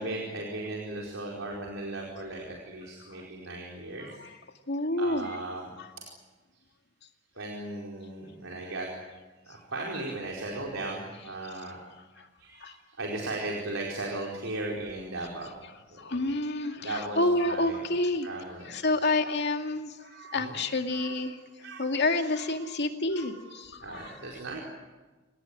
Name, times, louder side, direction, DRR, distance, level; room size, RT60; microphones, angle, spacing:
voice 1, 0.0-4.1 5.0-5.7 7.3-8.9 9.5-11.8 12.4-15.6 15.9-16.2 16.8-17.8 18.2-19.0 20.0-20.6 20.9-21.3 21.6-22.0 22.3-22.7 23.1-23.5 23.8-24.6, right 2 dB, 80° right, -2 dB, 4.7 m, -37 dB
voice 2, 4.7-5.3 5.8-5.9 12.2-12.3 12.6-12.8 16.0-18.3 18.6-24.1, left 2 dB, 60° left, 5 dB, 2.4 m, -29 dB
27.5 x 19.0 x 9.8 m, 1.2 s
head